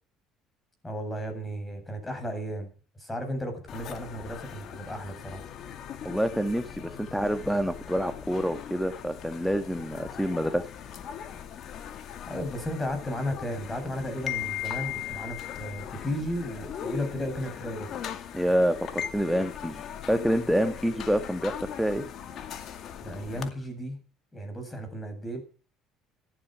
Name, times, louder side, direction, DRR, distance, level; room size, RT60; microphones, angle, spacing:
voice 1, 0.8-5.4 12.3-17.9 23.0-24.0 24.3-25.4, equal, 15° left, 6 dB, 7.7 m, -34 dB
sound 1, 3.7-23.5, left 10 dB, 55° left, 2.3 m, -39 dB
voice 2, 6.0-10.7 18.3-22.1, equal, ahead, 8 dB, 1.8 m, -27 dB
14.5 x 11.5 x 6.5 m, 0.40 s
supercardioid pair, 90°, 0 cm